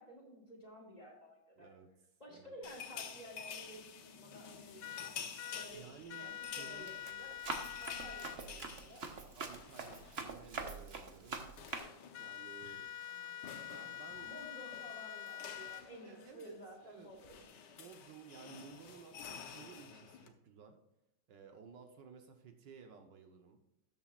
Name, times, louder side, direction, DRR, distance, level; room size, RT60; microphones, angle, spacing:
voice 1, 0.0-1.7 2.2-5.1 5.5-7.4 7.8-9.0 14.2-17.4, equal, 20° left, -2 dB, 3.0 m, -53 dB
voice 2, 1.6-1.9 2.3-2.5 5.7-6.9 8.3-8.9 9.4-11.5 12.2-12.9 13.6-14.3 16.0-17.1 17.8-20.8 21.3-23.6, right 6 dB, 70° right, 4 dB, 1.6 m, -56 dB
sound 1, 2.6-10.5 10.8-11.0 11.2-20.3, left 7 dB, 65° left, 1.5 m, -51 dB
sound 2, 4.8-5.7 6.1-8.4 12.1-15.8, left 10 dB, 90° left, 0.6 m, -46 dB
Run, 5.7-6.0 6.5-11.8, right 4 dB, 40° right, 1.2 m, -44 dB
13.0 x 8.6 x 2.5 m, 0.84 s
omnidirectional pair, 2.1 m